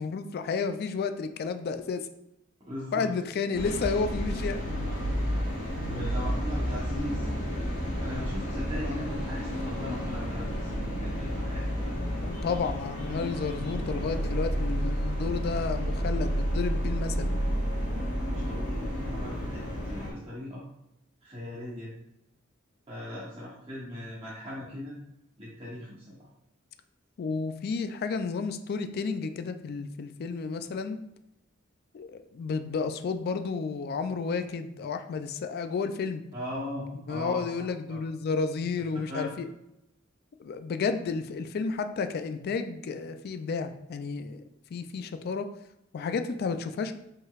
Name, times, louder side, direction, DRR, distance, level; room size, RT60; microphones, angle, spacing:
voice 1, 0.0-2.1 2.9-4.6 8.7-9.1 12.2-17.3 27.2-31.0 31.9-36.2 37.1-39.5 40.4-44.4 44.7-45.5 45.9-46.9, left 5 dB, 50° left, 9 dB, 0.3 m, -32 dB
voice 2, 2.6-3.4 5.8-7.3 8.0-10.7 11.0-12.0 18.3-20.6 21.2-21.9 22.9-24.9 25.4-26.3 36.3-38.0 39.1-39.3, left 1 dB, 30° right, -8 dB, 1.0 m, -39 dB
sound 1, 3.5-20.1, equal, 65° left, 1.7 m, -31 dB
5.2 x 3.8 x 2.4 m, 0.84 s
head